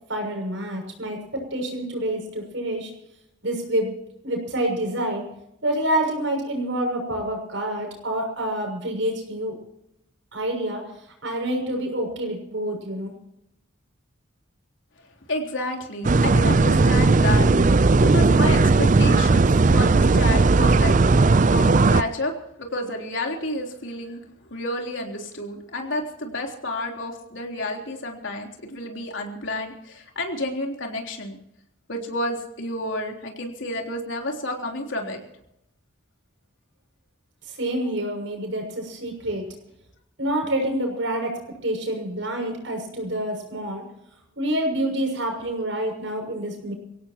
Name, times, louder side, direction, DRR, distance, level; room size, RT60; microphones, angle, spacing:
voice 1, 0.1-2.9 3.4-3.9 4.2-5.2 5.6-9.6 10.3-10.8 11.2-13.1 37.5-39.4 40.2-43.8 44.4-46.7, right 1 dB, 75° right, 2 dB, 6.6 m, -27 dB
voice 2, 15.3-17.5 18.0-21.2 21.5-22.3 22.6-24.2 24.5-31.4 31.9-35.2, left 1 dB, 75° left, 1 dB, 3.6 m, -30 dB
sound 1, 16.0-22.0, right 3 dB, 40° right, 0.5 m, -17 dB
24.0 x 17.0 x 3.0 m, 0.81 s
head